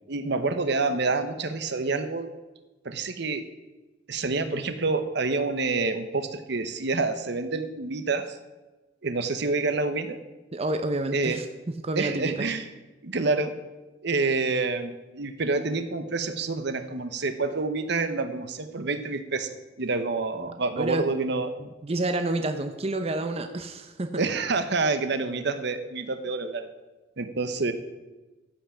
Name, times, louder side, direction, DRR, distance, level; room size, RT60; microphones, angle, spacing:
voice 1, 0.1-2.3 2.8-3.5 4.1-8.4 9.0-10.2 11.1-11.4 12.0-12.7 13.0-13.5 14.0-21.5 24.2-26.7 27.2-27.7, right 3 dB, 65° right, 10 dB, 0.9 m, -28 dB
voice 2, 10.5-12.5 20.4-20.5 20.8-21.1 21.6-24.2, right 2 dB, 35° right, 7 dB, 0.7 m, -29 dB
15.0 x 5.8 x 7.4 m, 1.1 s
head